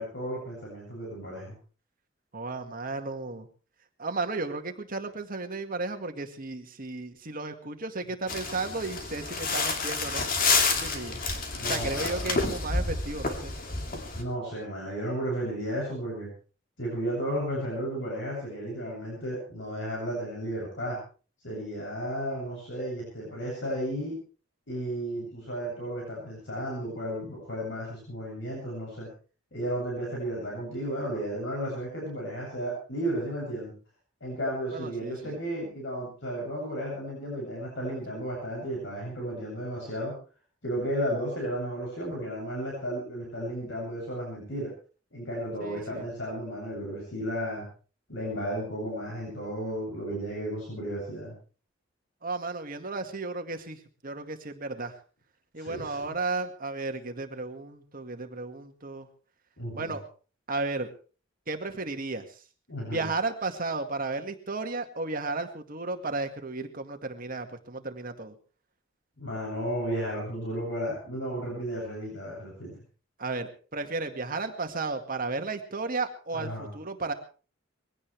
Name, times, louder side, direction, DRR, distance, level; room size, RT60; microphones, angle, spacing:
voice 1, 0.0-1.5 11.6-12.5 14.1-16.3 16.8-21.0 21.4-24.2 24.7-29.1 29.5-33.7 34.2-40.1 40.6-44.7 45.1-47.7 48.1-51.3 55.6-56.0 59.6-59.9 62.7-63.1 69.2-72.7 76.3-76.7, equal, 65° left, -2 dB, 7.9 m, -33 dB
voice 2, 2.3-3.5 4.0-10.3 10.8-11.2 11.7-13.6 34.7-35.3 45.6-46.0 52.2-54.9 55.5-59.1 59.7-60.1 60.5-60.9 61.5-62.3 62.9-68.3 73.2-77.1, right 3 dB, 45° right, 6 dB, 2.0 m, -34 dB
sound 1, 8.3-14.2, left 4 dB, 45° left, 2.6 m, -29 dB
22.0 x 17.0 x 3.4 m, 0.38 s
head